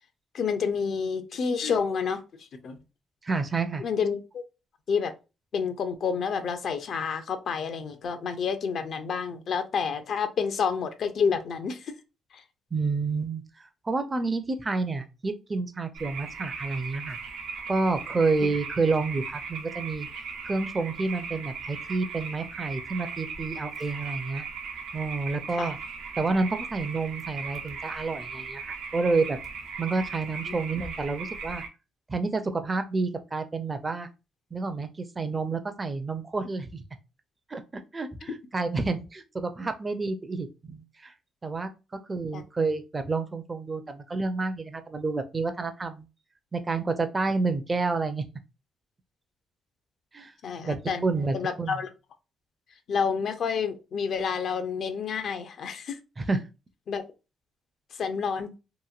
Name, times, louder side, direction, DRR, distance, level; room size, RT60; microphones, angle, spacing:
voice 1, 0.3-2.8 3.8-4.4 4.9-5.1 5.5-11.9 12.3-12.4 18.4-18.5 25.6-25.7 30.5-30.6 42.3-42.4 50.4-51.0 51.3-51.9 52.9-56.0 56.9-57.0 57.9-58.6, left 6 dB, 60° left, 8 dB, 0.5 m, -29 dB
voice 2, 3.2-3.8 12.7-17.2 17.7-20.1 20.4-24.5 24.9-25.8 26.2-29.4 29.8-31.6 32.1-34.1 34.5-36.8 37.5-41.1 41.4-41.7 42.1-46.1 46.5-48.2 50.1-50.3 50.7-51.8 56.2-56.4, right 3 dB, 25° right, 8 dB, 0.5 m, -29 dB
sound 1, 15.9-31.7, right 5 dB, 85° right, 0.6 m, -38 dB
2.9 x 2.5 x 2.4 m, 0.28 s
cardioid pair, 90°, 0 cm